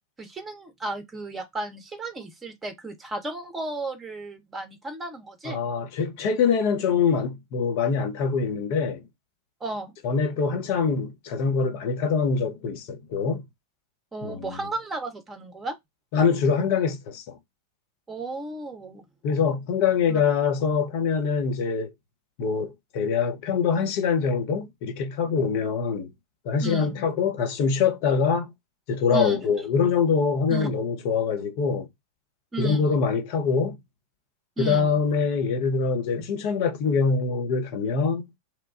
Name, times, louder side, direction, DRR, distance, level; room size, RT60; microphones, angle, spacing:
voice 1, 0.2-5.6 9.6-9.9 14.1-15.7 18.1-19.0 20.1-20.2 26.6-27.0 29.1-29.5 30.5-30.7 32.5-32.9 34.6-34.9, right 2 dB, 15° right, 0.8 m, -34 dB
voice 2, 5.4-9.0 10.0-13.4 14.2-14.6 16.1-17.4 19.2-21.9 22.4-26.1 26.4-28.5 28.9-31.9 32.6-33.8 34.6-38.2, left 5 dB, 45° left, 0.7 m, -24 dB
2.9 x 2.2 x 2.4 m
figure-of-eight pair, 90°, 0 cm